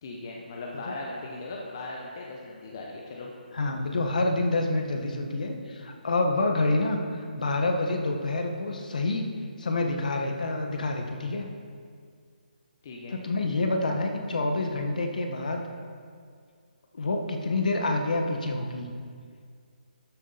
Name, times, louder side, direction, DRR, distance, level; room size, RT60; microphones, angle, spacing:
voice 1, 0.0-3.3 12.8-13.2, left 2 dB, 20° left, -2 dB, 0.7 m, -38 dB
voice 2, 3.5-9.3 9.6-11.5 13.1-15.6 16.9-18.9, left 2 dB, 55° left, 3 dB, 1.3 m, -27 dB
12.5 x 7.3 x 4.0 m, 2.1 s
hypercardioid pair, 180°, 5 cm